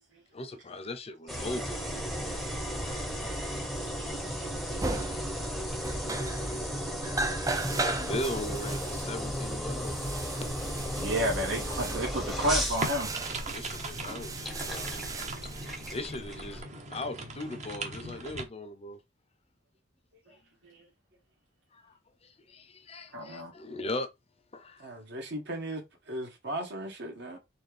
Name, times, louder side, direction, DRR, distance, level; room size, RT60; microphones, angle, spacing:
voice 1, 0.3-3.1 4.9-5.0 7.6-9.9 10.2-10.3 13.5-15.1 15.9-19.0 20.3-20.4 21.7-21.9 22.2-24.1 24.5-24.9, left 1 dB, 30° left, 0.7 m, -39 dB
sound 1, 1.3-16.6, equal, ahead, 0.8 m, -35 dB
sound 2, 4.4-4.5 4.8-5.5 5.8-6.7 7.0-16.5, right 3 dB, 15° right, 0.4 m, -37 dB
voice 2, 4.4-5.1 11.0-13.2 20.6-20.8 23.1-23.5, equal, 80° right, 1.7 m, -32 dB
sound 3, 12.8-18.4, right 2 dB, 35° right, 0.9 m, -40 dB
voice 3, 24.8-25.8 26.1-27.4, right 1 dB, 60° right, 1.4 m, -37 dB
4.4 x 3.4 x 3.3 m
head